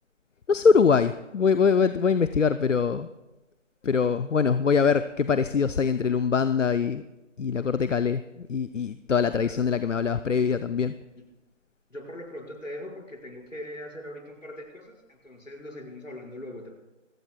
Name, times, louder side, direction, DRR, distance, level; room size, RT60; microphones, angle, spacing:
voice 1, 0.5-3.1 3.8-7.0 7.4-10.9, left 6 dB, 75° left, 12 dB, 0.6 m, -23 dB
voice 2, 9.3-9.7 10.5-10.6 11.1-11.2 11.9-16.7, left 1 dB, 90° left, -1 dB, 5.3 m, -41 dB
26.0 x 15.5 x 2.3 m, 1.1 s
figure-of-eight pair, 170°, 38 cm